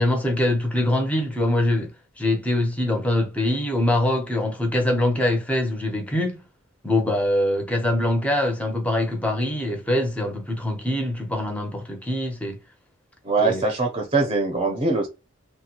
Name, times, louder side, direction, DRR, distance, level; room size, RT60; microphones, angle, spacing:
voice 1, 0.0-6.4 6.8-12.6 13.4-13.6, left 1 dB, 5° left, 0.7 m, -23 dB
voice 2, 13.2-15.1, right 3 dB, 25° right, 0.8 m, -22 dB
3.2 x 2.2 x 2.9 m
head